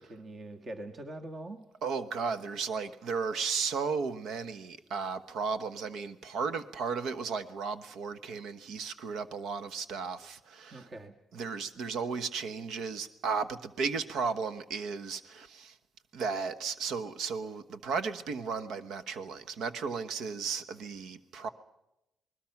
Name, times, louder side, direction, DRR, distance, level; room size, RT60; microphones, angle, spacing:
voice 1, 0.0-1.6 10.7-11.1, right 1 dB, 40° right, 1.9 m, -43 dB
voice 2, 1.8-10.9 11.3-15.7 16.1-21.5, right 5 dB, 75° right, 1.2 m, -34 dB
27.5 x 20.0 x 6.0 m
cardioid pair, 90°, 0 cm